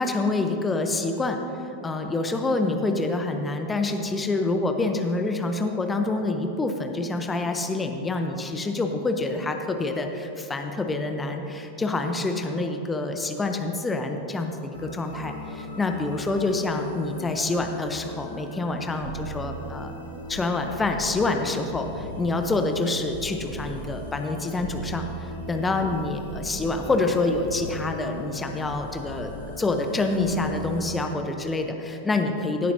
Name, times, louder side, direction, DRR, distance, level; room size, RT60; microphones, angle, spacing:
voice 1, 0.0-1.4 1.8-19.9 20.3-32.7, left 2 dB, 15° left, 5 dB, 0.8 m, -27 dB
sound 1, 14.7-30.9, equal, 80° right, 2.5 m, -38 dB
16.5 x 8.6 x 2.8 m, 2.9 s
figure-of-eight pair, 90°, 0 cm